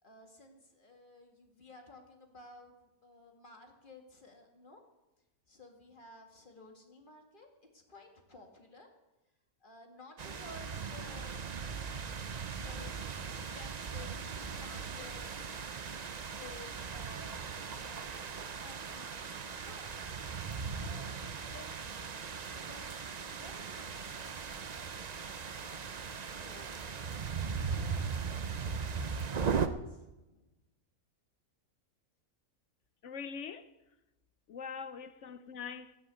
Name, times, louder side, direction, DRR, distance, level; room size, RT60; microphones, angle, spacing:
voice 1, 0.0-4.8 5.5-7.5 7.7-8.9 9.6-11.4 11.7-15.5 15.9-20.0 20.7-22.0 22.3-24.2 26.3-26.7 27.5-28.3 29.2-30.5 35.0-35.4, left 2 dB, 35° left, 2.2 m, -55 dB
sound 1, 10.2-29.7, right 6 dB, 45° right, 0.5 m, -38 dB
sound 2, 19.4-26.9, left 1 dB, 5° left, 3.8 m, -61 dB
voice 2, 33.0-33.7 34.5-36.0, left 6 dB, 60° left, 0.9 m, -43 dB
14.0 x 9.6 x 8.3 m
omnidirectional pair, 1.5 m